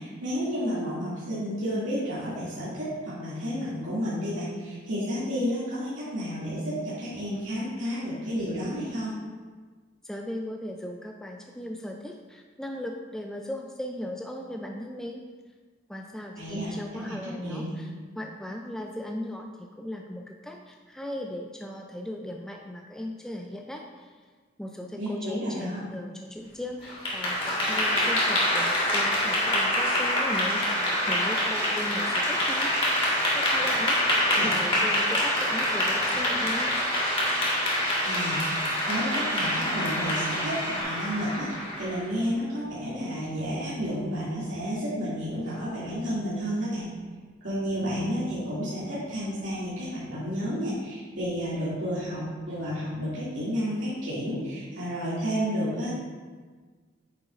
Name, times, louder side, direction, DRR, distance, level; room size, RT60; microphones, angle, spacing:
voice 1, 0.0-9.2 16.4-17.1 17.4-17.8 24.9-25.8 34.3-34.5 38.0-38.6 38.8-46.9 47.4-55.9, equal, 80° right, -11 dB, 2.3 m, -31 dB
voice 2, 10.0-15.2 15.9-17.9 18.2-24.1 24.6-33.0 33.3-34.0 34.3-36.8, left 1 dB, 5° left, 1 dB, 0.3 m, -37 dB
Clapping / Applause, 26.8-42.1, left 1 dB, 30° left, 1.6 m, -26 dB
Musical instrument, 30.5-40.8, right 2 dB, 15° right, 0.7 m, -37 dB
9.1 x 7.0 x 2.5 m, 1.5 s
head